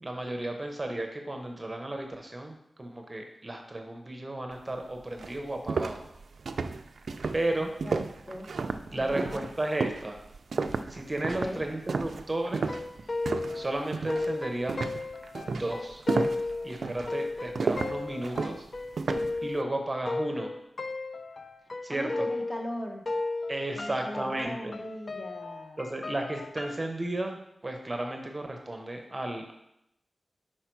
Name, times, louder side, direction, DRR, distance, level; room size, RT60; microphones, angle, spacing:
voice 1, 0.0-6.0 7.3-7.7 8.9-10.2 10.9-12.7 13.5-14.8 15.5-16.0 16.6-18.7 19.4-20.5 21.8-22.3 23.5-24.7 25.8-29.5, right 1 dB, 25° right, 4 dB, 0.7 m, -33 dB
sound 1, 4.7-4.8 5.2-13.6 13.9-14.3 14.7-19.4, right 4 dB, 75° right, 0.3 m, -32 dB
voice 2, 7.6-8.5 8.9-9.5 11.2-11.6 21.9-23.1 23.7-25.9, equal, 25° left, 2 dB, 0.9 m, -39 dB
sound 2, 12.6-22.8 23.1-26.9, left 2 dB, 45° left, 0.4 m, -35 dB
5.7 x 4.4 x 4.5 m, 0.80 s
wide cardioid pair, 100°, 0 cm